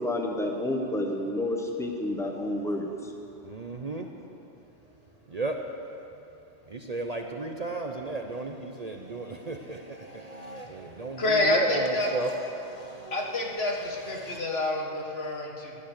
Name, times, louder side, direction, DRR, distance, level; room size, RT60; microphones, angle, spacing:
voice 1, 0.0-3.1, left 1 dB, 5° left, 2 dB, 1.2 m, -30 dB
voice 2, 3.4-4.1 5.3-5.6 6.7-14.4, right 2 dB, 40° right, 3 dB, 0.8 m, -35 dB
voice 3, 11.2-12.1 13.1-15.8, left 1 dB, 60° left, 0 dB, 1.9 m, -27 dB
16.5 x 11.0 x 6.6 m, 2.8 s
omnidirectional pair, 1.2 m